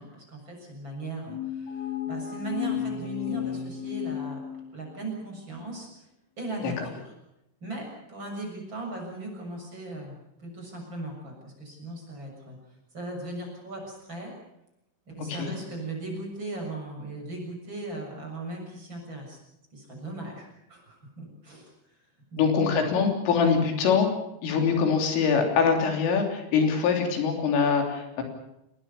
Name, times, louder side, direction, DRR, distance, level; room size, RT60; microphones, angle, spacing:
voice 1, 0.0-4.4 4.7-5.9 6.4-7.1 7.6-12.6 12.9-14.3 15.1-19.4 19.7-21.7 22.3-22.4, right 2 dB, 25° right, 1 dB, 7.3 m, -38 dB
sound 1, 1.3-5.0, left 10 dB, 55° left, 4.0 m, -33 dB
voice 2, 22.4-24.1 24.4-28.2, left 6 dB, 90° left, 4 dB, 5.9 m, -23 dB
27.0 x 20.0 x 7.0 m, 0.85 s
omnidirectional pair, 5.6 m